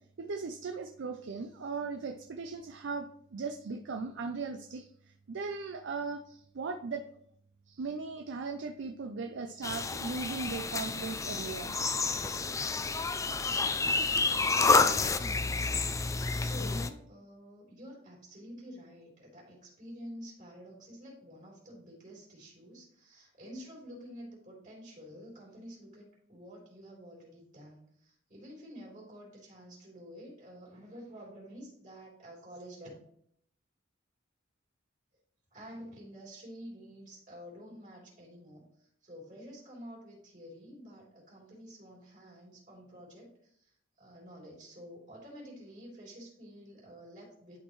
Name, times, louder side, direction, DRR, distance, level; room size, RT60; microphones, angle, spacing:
voice 1, 0.2-4.9 5.3-7.0 7.7-11.8, right 4 dB, 65° right, 5 dB, 0.5 m, -38 dB
sound 1, 9.6-16.9, left 3 dB, 15° left, 0.3 m, -29 dB
voice 2, 14.8-15.4 16.2-32.9 35.5-38.7 39.0-43.7 44.0-47.6, equal, 40° right, -3 dB, 3.3 m, -49 dB
11.5 x 4.3 x 3.1 m, 0.67 s
head